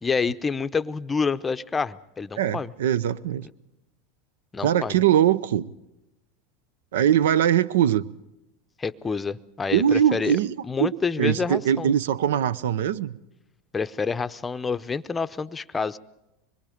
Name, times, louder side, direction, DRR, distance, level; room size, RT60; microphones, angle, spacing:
voice 1, 0.0-2.7 4.5-5.0 8.8-10.4 10.6-11.9 13.7-16.0, left 5 dB, 15° left, 0.6 m, -28 dB
voice 2, 2.4-3.5 4.6-5.7 6.9-8.1 9.7-13.1, right 10 dB, 85° right, 0.7 m, -22 dB
25.0 x 21.5 x 5.1 m
supercardioid pair, 120°, 0 cm